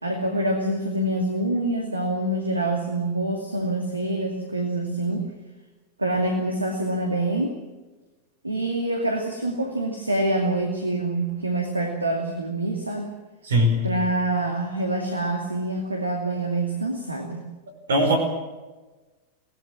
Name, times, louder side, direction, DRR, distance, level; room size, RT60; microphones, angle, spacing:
voice 1, 0.0-5.3 6.0-7.6 8.4-13.1 13.8-17.4, right 1 dB, 80° right, 3 dB, 2.5 m, -26 dB
voice 2, 13.4-13.8 17.9-18.2, equal, 65° right, 5 dB, 5.5 m, -19 dB
24.5 x 18.5 x 7.3 m, 1.2 s
figure-of-eight pair, 90°, 0 cm